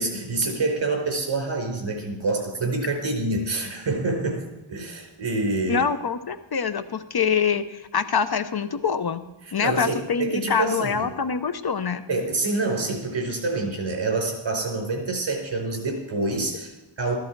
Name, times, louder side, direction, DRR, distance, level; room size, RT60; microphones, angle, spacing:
voice 1, 0.0-5.8 9.6-11.1 12.1-17.2, right 3 dB, 60° right, 2 dB, 4.4 m, -27 dB
voice 2, 5.7-9.2 9.5-12.0, left 6 dB, 50° left, 11 dB, 0.8 m, -25 dB
14.5 x 14.0 x 4.6 m, 1.0 s
wide cardioid pair, 90°, 48 cm